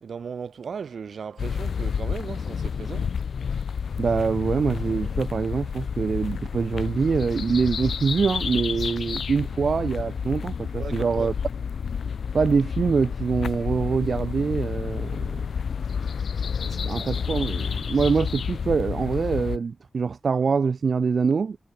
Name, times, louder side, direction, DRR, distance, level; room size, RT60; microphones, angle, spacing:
voice 1, 0.0-3.1 10.8-11.3 16.0-16.1 16.6-17.1, right 6 dB, 75° right, 2.8 m, -37 dB
sound 1, 1.4-19.6, left 6 dB, 90° left, 0.4 m, -30 dB
voice 2, 4.0-11.3 12.3-15.5 16.8-21.6, right 5 dB, 55° right, 0.4 m, -24 dB
wide cardioid pair, 180°, 0 cm